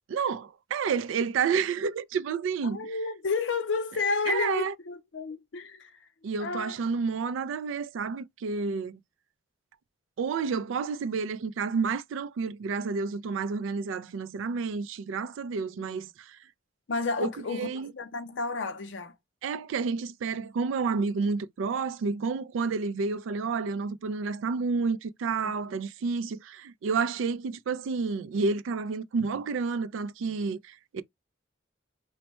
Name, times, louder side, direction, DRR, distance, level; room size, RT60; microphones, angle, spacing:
voice 1, 0.1-2.9 4.3-4.7 6.2-9.0 10.2-16.4 17.2-17.9 19.4-31.0, right 5 dB, 85° right, 0.3 m, -30 dB
voice 2, 2.6-6.0 6.4-6.8 15.8-16.0 16.9-17.7 17.9-19.1 25.4-25.5, left 4 dB, 75° left, 0.5 m, -31 dB
4.3 x 2.1 x 2.9 m
head